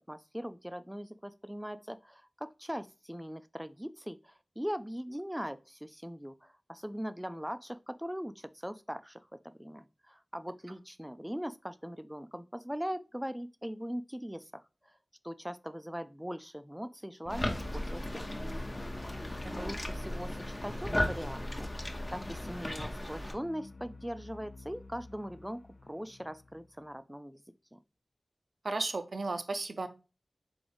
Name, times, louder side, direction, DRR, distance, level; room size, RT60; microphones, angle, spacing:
voice 1, 0.1-14.6 15.2-18.6 19.2-21.7 22.1-27.4 27.7-27.8, equal, 5° right, 0.3 m, -40 dB
sound 1, 17.2-26.8, left 3 dB, 75° left, 0.4 m, -47 dB
sound 2, 17.3-23.3, left 1 dB, 25° left, 0.7 m, -36 dB
voice 2, 28.6-29.9, right 3 dB, 75° right, 0.5 m, -34 dB
3.8 x 3.4 x 3.4 m
wide cardioid pair, 55°, 0 cm